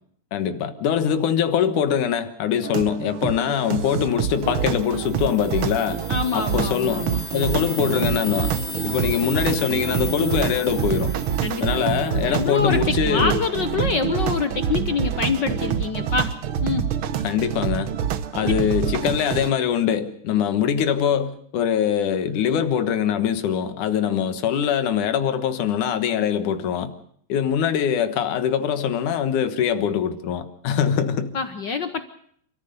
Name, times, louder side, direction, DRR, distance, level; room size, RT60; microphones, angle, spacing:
voice 1, 0.3-6.0 6.3-7.1 7.3-8.5 8.8-11.1 11.6-13.4 17.2-17.9 18.3-26.9 27.3-31.3, left 8 dB, 90° left, 2.9 m, -23 dB
sound 1, 2.6-19.5, right 9 dB, 65° right, 1.4 m, -26 dB
sound 2, 4.6-12.5, left 3 dB, 30° left, 3.0 m, -36 dB
voice 2, 6.1-7.2 11.4-16.3 16.6-16.9 18.4-18.5 31.3-32.1, left 5 dB, 70° left, 1.0 m, -26 dB
29.0 x 14.0 x 6.8 m
omnidirectional pair, 3.4 m